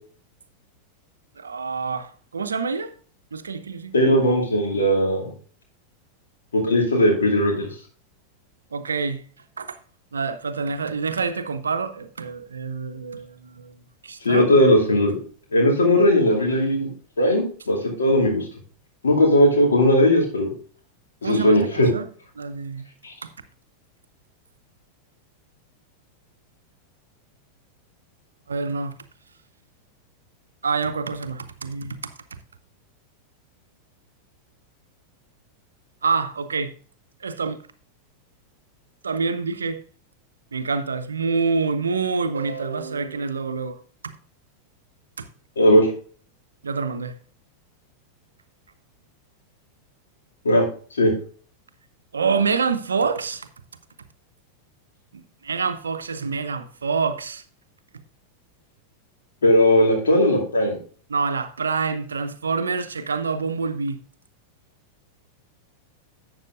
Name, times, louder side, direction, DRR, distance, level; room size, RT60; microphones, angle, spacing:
voice 1, 1.4-2.9 3.3-3.9 8.7-9.2 9.6-9.8 10.1-13.7 14.0-14.5 21.2-22.1 22.4-22.8 23.2-23.3 28.5-28.9 30.6-32.0 36.0-36.7 37.2-37.6 39.0-39.8 40.5-43.8 45.2-45.3 46.6-47.1 52.1-53.5 55.1-57.4 61.1-64.0, right 5 dB, 70° right, 0.6 m, -26 dB
voice 2, 3.9-5.3 6.5-7.7 14.2-15.1 15.5-16.9 17.2-18.4 19.0-20.5 21.2-21.9 23.0-23.1 45.6-45.9 50.4-50.6 51.0-51.1 59.4-60.8, left 1 dB, 70° left, 2.4 m, -18 dB
12.0 x 7.5 x 2.5 m
figure-of-eight pair, 90°, 0 cm